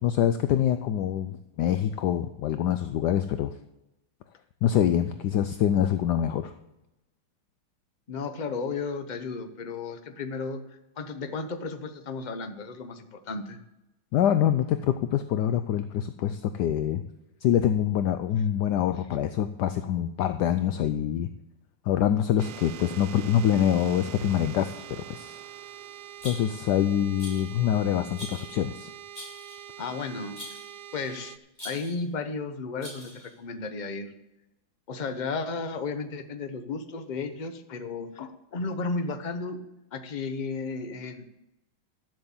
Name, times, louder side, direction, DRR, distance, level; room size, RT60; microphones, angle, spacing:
voice 1, 0.0-3.5 4.6-6.5 14.1-17.0 17.4-21.3 21.8-25.4 26.2-28.9, left 10 dB, 75° left, 10 dB, 1.0 m, -25 dB
voice 2, 8.1-13.6 29.8-30.6 30.9-31.4 31.6-34.1 34.9-39.6 39.9-41.2, left 4 dB, 45° left, 8 dB, 0.5 m, -34 dB
sound 1, 22.4-31.4, right 11 dB, 80° right, 0.9 m, -44 dB
Rattle, 26.2-26.7 27.2-27.6 28.1-28.5 29.1-29.7 30.4-30.7 31.5-32.0 32.8-33.3, equal, 20° left, 6.1 m, -43 dB
12.0 x 7.8 x 7.2 m, 0.94 s
omnidirectional pair, 2.3 m